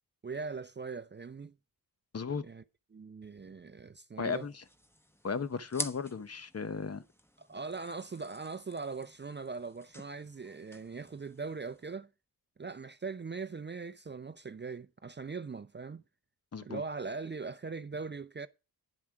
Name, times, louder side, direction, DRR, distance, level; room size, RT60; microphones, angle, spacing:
voice 1, 0.2-1.5 2.4-2.6 2.9-4.5 7.4-12.1 12.6-16.0 16.6-18.5, right 4 dB, 30° right, 0.5 m, -40 dB
voice 2, 2.1-2.4 4.2-4.6 5.2-7.0 16.5-16.8, left 5 dB, 40° left, 0.7 m, -35 dB
sound 1, 4.3-11.9, equal, 5° left, 1.1 m, -48 dB
10.0 x 7.3 x 4.6 m
wide cardioid pair, 95°, 40 cm